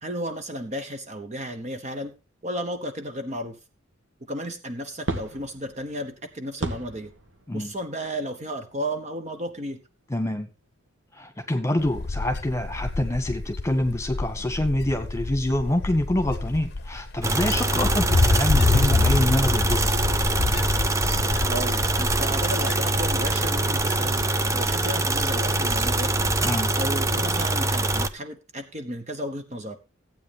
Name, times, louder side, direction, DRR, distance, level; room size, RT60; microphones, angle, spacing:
voice 1, 0.0-2.1 2.4-3.6 4.3-7.1 7.5-9.8 17.7-17.9 21.5-24.2 24.5-26.1 26.7-29.8, equal, 35° right, 7 dB, 1.0 m, -33 dB
sound 1, 5.1-9.0 9.6-9.7 10.5-10.6, right 2 dB, 60° right, 1.8 m, -36 dB
voice 2, 10.1-10.5 11.1-19.9 26.4-26.7, left 1 dB, 15° left, 6 dB, 1.7 m, -26 dB
Wind, 11.8-28.1, left 3 dB, 50° left, 0.7 m, -28 dB
sound 2, 17.2-28.1, right 2 dB, 15° right, 0.5 m, -24 dB
15.0 x 8.9 x 3.4 m, 0.31 s
head